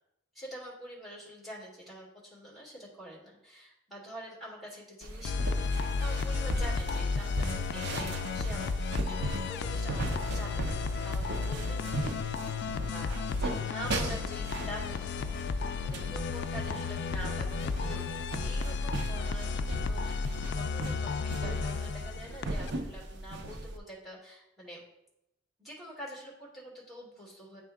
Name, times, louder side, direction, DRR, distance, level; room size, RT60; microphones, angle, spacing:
voice 1, 0.3-10.7 11.0-11.9 12.2-24.8 25.6-27.6, equal, ahead, -5 dB, 2.2 m, -46 dB
sound 1, 5.0-23.8, right 2 dB, 60° right, 0.6 m, -38 dB
sound 2, 5.2-22.7, left 4 dB, 60° left, 0.3 m, -33 dB
9.6 x 3.6 x 3.4 m, 0.87 s
head